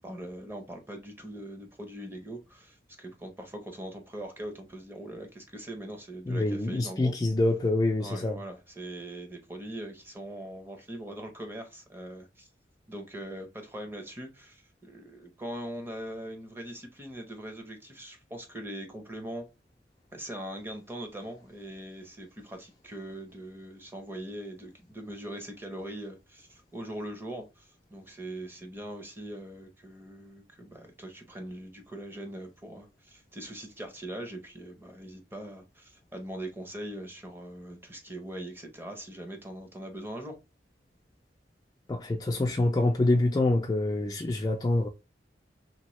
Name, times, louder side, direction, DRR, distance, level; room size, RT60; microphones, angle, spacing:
voice 1, 0.0-7.1 8.0-12.5 12.9-19.5 20.1-40.4, right 1 dB, 15° right, 0.7 m, -41 dB
voice 2, 6.3-8.4 41.9-44.9, left 2 dB, 20° left, 0.3 m, -26 dB
2.9 x 2.7 x 3.0 m
head